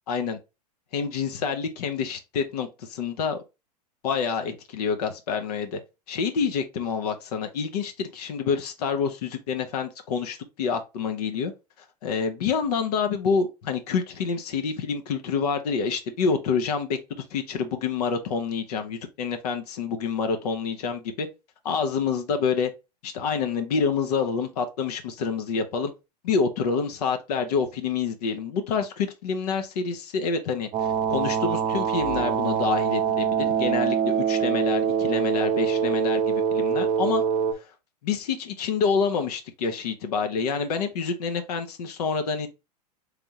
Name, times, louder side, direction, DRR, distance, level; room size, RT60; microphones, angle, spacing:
voice 1, 0.1-0.4 0.9-3.4 4.0-5.8 6.1-11.5 12.0-17.0 17.3-21.3 21.6-22.7 23.0-25.9 26.2-37.2 38.0-42.5, left 5 dB, 70° left, 0.9 m, -27 dB
sound 1, 30.7-37.5, right 7 dB, 25° right, 0.8 m, -24 dB
3.6 x 3.4 x 2.8 m
hypercardioid pair, 100°, 21 cm